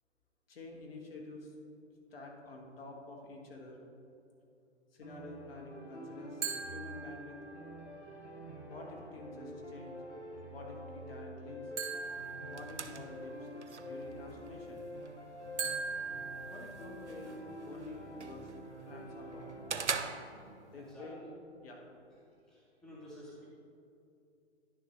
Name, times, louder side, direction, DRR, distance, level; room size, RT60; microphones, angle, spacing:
voice 1, 0.5-1.5 2.1-3.8 4.9-7.4 8.7-10.0 10.5-11.7 12.5-13.5 13.8-14.9 16.5-18.5 18.9-19.6 20.7-21.3 21.6-21.8, left 2 dB, 55° left, 0 dB, 1.6 m, -48 dB
sound 1, 5.0-19.8, equal, 85° left, 1.5 m, -47 dB
sound 2, 6.4-7.7 11.8-13.3 15.6-17.3, right 5 dB, 20° right, 1.3 m, -40 dB
sound 3, 11.9-20.9, right 5 dB, 90° right, 0.6 m, -45 dB
voice 2, 20.1-20.6 20.9-21.1 22.5-23.4, equal, ahead, -6 dB, 0.7 m, -52 dB
10.0 x 6.5 x 3.2 m, 2.7 s
figure-of-eight pair, 125°, 34 cm